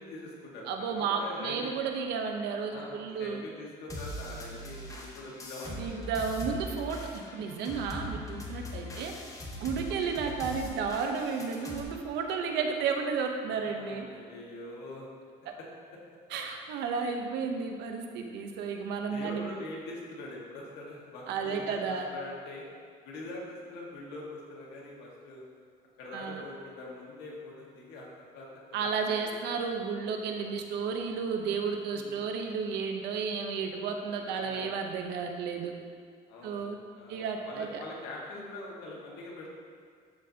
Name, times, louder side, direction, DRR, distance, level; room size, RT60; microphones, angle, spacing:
voice 1, 0.0-1.7 2.7-5.9 8.6-9.0 9.7-9.9 13.5-15.1 18.7-18.8 19.1-22.6 23.0-25.4 26.0-28.5 28.8-29.3 31.9-32.2 34.4-34.7 36.3-39.5, left 2 dB, 85° left, -3 dB, 1.5 m, -43 dB
voice 2, 0.7-3.4 5.8-9.1 9.5-14.1 15.5-15.6 16.3-19.5 21.3-22.0 26.1-26.4 28.7-35.7 36.4-36.8 37.1-37.8, right 5 dB, 85° right, 4 dB, 0.8 m, -32 dB
sound 1, 3.9-11.8, equal, 20° left, 1.0 m, -41 dB
12.5 x 4.2 x 2.8 m, 2.1 s
cardioid pair, 110°, 17 cm